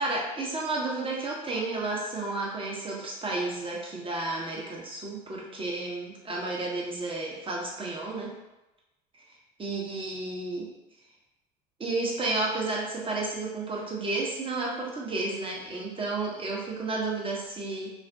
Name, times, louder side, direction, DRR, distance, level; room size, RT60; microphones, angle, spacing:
voice 1, 0.0-8.3 9.3-10.7 11.8-17.9, right 2 dB, 25° right, -3 dB, 0.9 m, -32 dB
3.2 x 2.1 x 2.7 m, 1.0 s
hypercardioid pair, 65°, 21 cm